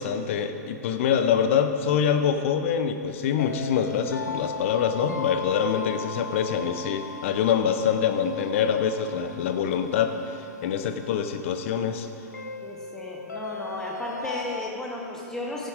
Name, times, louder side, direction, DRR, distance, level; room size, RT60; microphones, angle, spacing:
voice 1, 0.0-10.2 10.6-12.1, left 7 dB, 45° left, 8 dB, 0.8 m, -25 dB
sound 1, 3.4-14.7, left 4 dB, 85° left, 0.4 m, -38 dB
voice 2, 12.6-15.7, left 1 dB, 5° left, -2 dB, 1.4 m, -34 dB
15.0 x 9.0 x 3.7 m, 2.9 s
figure-of-eight pair, 105°, 9 cm